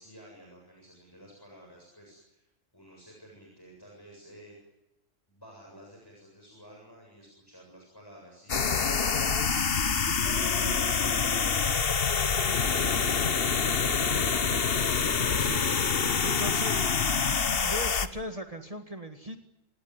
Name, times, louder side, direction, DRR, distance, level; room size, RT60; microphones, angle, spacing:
voice 1, 0.0-4.5 5.3-14.6 15.4-15.6, equal, 15° left, -1 dB, 7.5 m, -53 dB
sound 1, 8.5-18.1, left 5 dB, 50° left, 1.4 m, -26 dB
voice 2, 15.4-15.8 16.2-17.3 17.6-19.4, left 1 dB, 30° right, 5 dB, 1.9 m, -38 dB
27.0 x 18.5 x 9.7 m, 0.93 s
omnidirectional pair, 1.3 m